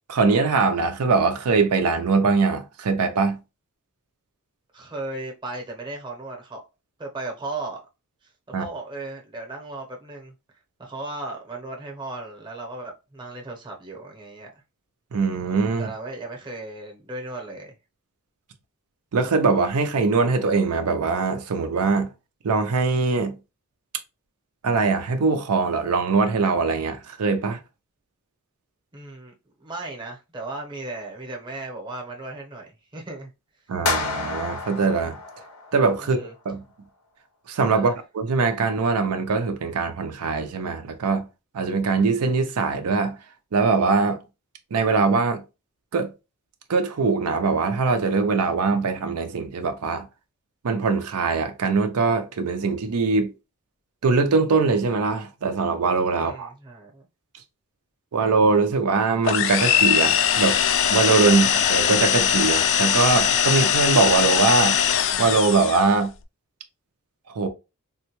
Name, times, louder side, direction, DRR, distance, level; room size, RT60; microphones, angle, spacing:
voice 1, 0.1-3.4 8.5-8.7 15.1-15.9 19.1-22.1 22.4-23.3 24.6-27.6 33.7-35.2 35.7-36.6 37.5-41.2 41.5-43.2 43.5-44.2 44.7-45.4 45.9-46.1 46.7-50.1 50.6-53.3 54.0-56.5 58.1-60.6 60.9-64.8 65.2-66.1 67.3-67.5, right 4 dB, 85° right, 0.5 m, -22 dB
voice 2, 4.7-6.6 7.0-7.8 8.5-10.3 10.8-14.6 15.8-17.7 28.9-29.3 29.6-33.3 36.0-36.3 37.7-38.0 56.1-57.0 61.3-61.6, right 2 dB, 20° right, 0.8 m, -36 dB
sound 1, 33.9-36.1, left 3 dB, 85° left, 0.7 m, -29 dB
sound 2, 59.2-66.0, left 9 dB, 60° left, 0.3 m, -21 dB
3.5 x 2.2 x 2.9 m
head